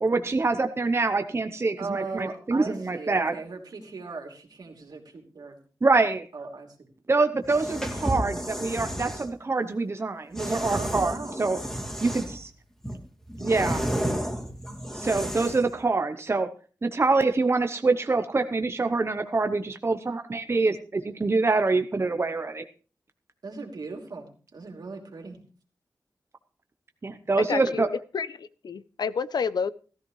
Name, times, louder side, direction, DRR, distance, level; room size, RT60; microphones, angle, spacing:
voice 1, 0.0-3.3 5.8-6.3 7.1-11.6 12.0-12.5 13.4-13.9 14.9-16.5 16.8-22.6 27.0-27.9, right 3 dB, 40° right, 0.8 m, -25 dB
voice 2, 1.8-5.6 6.3-6.9 10.7-11.4 23.4-24.3 24.5-25.4, right 3 dB, 75° right, 2.9 m, -38 dB
sound 1, 7.4-9.3 10.3-12.4 12.8-15.7, equal, 10° left, 2.5 m, -32 dB
voice 3, 27.4-27.9 28.1-29.7, left 5 dB, 80° left, 0.6 m, -29 dB
15.0 x 13.5 x 3.2 m
wide cardioid pair, 70°, 7 cm